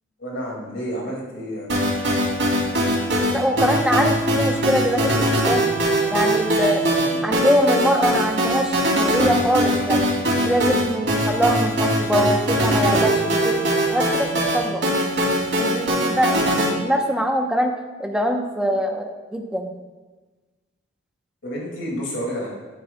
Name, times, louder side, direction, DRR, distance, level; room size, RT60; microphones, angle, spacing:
voice 1, 0.2-1.7 7.0-7.2 21.4-22.5, equal, 75° left, -3 dB, 2.2 m, -30 dB
sound 1, 1.7-16.7, equal, 70° right, 2.4 m, -21 dB
voice 2, 3.3-5.1 5.5-5.7 6.1-6.8 7.2-10.1 10.4-13.6 13.9-14.8 15.6-17.7 18.0-19.7, equal, 5° right, 2 dB, 0.7 m, -23 dB
10.5 x 9.1 x 2.2 m, 1.3 s
head